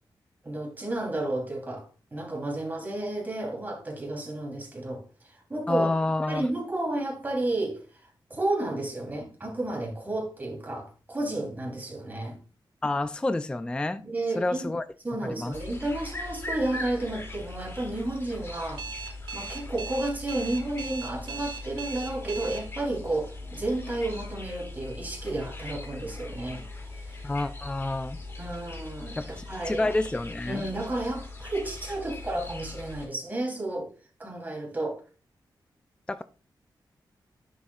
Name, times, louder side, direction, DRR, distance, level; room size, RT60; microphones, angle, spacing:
voice 1, 0.4-5.9 6.3-12.4 14.0-14.7 15.0-18.8 19.3-26.6 26.9-27.3 28.4-29.2 29.5-29.9 30.5-33.9 34.2-35.0, right 2 dB, 20° right, 3.2 m, -32 dB
voice 2, 5.7-6.5 12.8-14.0 14.4-14.8 15.2-15.5 27.2-28.2 29.2-30.6 36.1-36.2, left 2 dB, 10° left, 0.3 m, -28 dB
sound 1, 15.5-33.1, left 2 dB, 30° left, 2.5 m, -40 dB
Alarm, 18.8-22.6, right 5 dB, 80° right, 2.1 m, -38 dB
10.0 x 7.1 x 2.4 m
wide cardioid pair, 130°, 8 cm